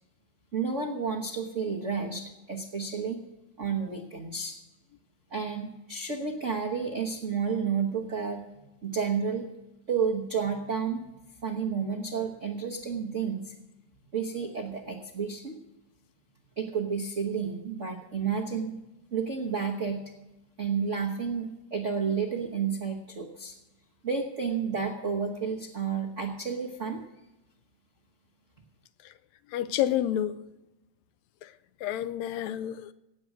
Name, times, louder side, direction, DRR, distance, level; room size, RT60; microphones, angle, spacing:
voice 1, 0.5-3.2 3.6-4.5 5.3-8.4 8.8-9.5 9.9-11.1 11.4-13.5 14.1-15.6 16.6-18.7 19.1-20.0 20.6-23.5 24.0-27.0, right 6 dB, 60° right, 0.8 m, -31 dB
voice 2, 29.5-30.4 31.4-31.5 31.8-32.9, left 11 dB, 80° left, 1.8 m, -29 dB
17.5 x 7.8 x 6.1 m
omnidirectional pair, 3.3 m